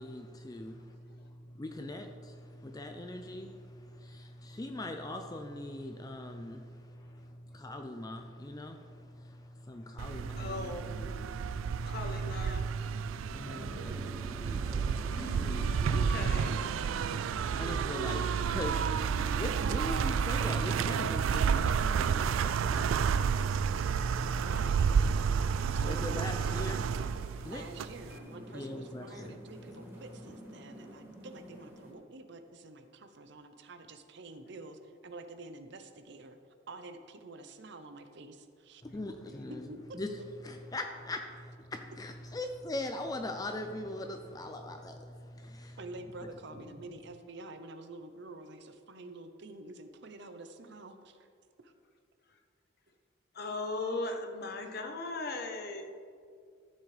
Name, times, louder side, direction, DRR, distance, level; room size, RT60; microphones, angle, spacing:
voice 1, 0.0-12.0 13.0-13.9 14.4-15.7 16.9-24.4 25.6-27.6 28.5-29.3 38.8-39.7 39.9-40.1 40.4-45.8, left 1 dB, 20° left, 5 dB, 0.4 m, -42 dB
sound 1, 10.0-28.2, right 6 dB, 80° right, 0.3 m, -30 dB
voice 2, 10.4-11.1 11.9-12.7 15.0-16.7 53.3-55.8, left 2 dB, 50° left, 5 dB, 0.9 m, -38 dB
sound 2, 13.4-31.9, equal, 10° right, 1.4 m, -50 dB
voice 3, 13.7-14.4 17.7-18.6 24.3-25.4 25.7-26.8 27.4-36.4 36.7-38.8 39.7-40.0 45.8-51.2 51.6-51.7, right 2 dB, 60° right, 8 dB, 0.7 m, -48 dB
14.0 x 7.4 x 3.3 m, 2.2 s
head